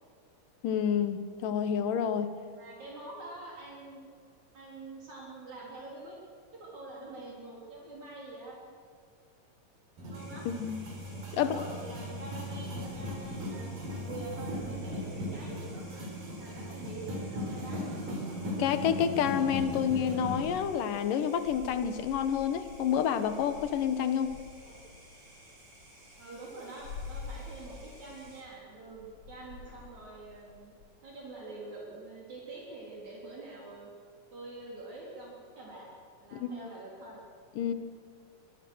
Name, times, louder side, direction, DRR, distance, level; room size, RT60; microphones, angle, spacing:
voice 1, 0.6-2.3 10.6-10.8 11.3-11.6 18.6-24.4 36.3-36.5 37.6-37.7, left 8 dB, 75° left, 10 dB, 2.8 m, -29 dB
voice 2, 2.6-4.1 4.5-6.2 6.6-8.8 10.1-10.5 11.3-15.9 16.3-17.8 24.7-24.8 26.2-30.7 31.0-33.9 34.3-35.9 36.2-37.2, right 2 dB, 55° right, -4 dB, 4.9 m, -45 dB
sound 1, 10.0-20.5, equal, 75° right, 6.2 m, -37 dB
sound 2, 10.1-28.4, right 1 dB, 30° right, 4.5 m, -56 dB
sound 3, 12.9-30.9, left 5 dB, 55° left, 5.1 m, -51 dB
24.5 x 23.0 x 6.4 m, 2.2 s
omnidirectional pair, 3.9 m